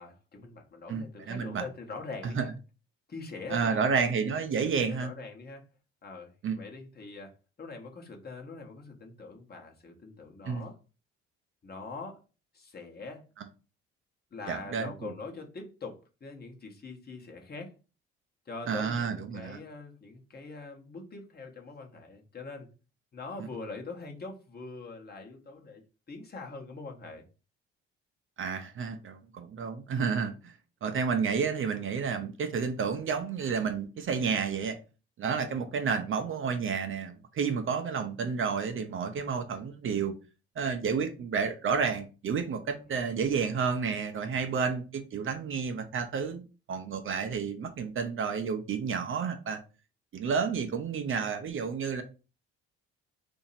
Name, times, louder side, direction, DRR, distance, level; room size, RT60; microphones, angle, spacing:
voice 1, 0.0-2.5 3.1-5.6 6.0-10.8 11.6-12.2 12.5-13.2 14.3-17.7 18.5-22.7 23.1-27.3 35.5-35.7 42.9-43.0 44.2-44.6, left 3 dB, 35° left, 2 dB, 1.0 m, -43 dB
voice 2, 0.9-1.6 2.2-2.5 3.5-5.1 6.4-6.6 10.5-10.7 14.5-15.1 18.7-19.6 28.4-30.5 30.8-34.8 35.2-40.2 40.6-46.4 46.7-49.6 50.1-52.0, right 6 dB, 45° right, 7 dB, 0.6 m, -30 dB
2.8 x 2.6 x 4.0 m, 0.33 s
hypercardioid pair, 60°, 29 cm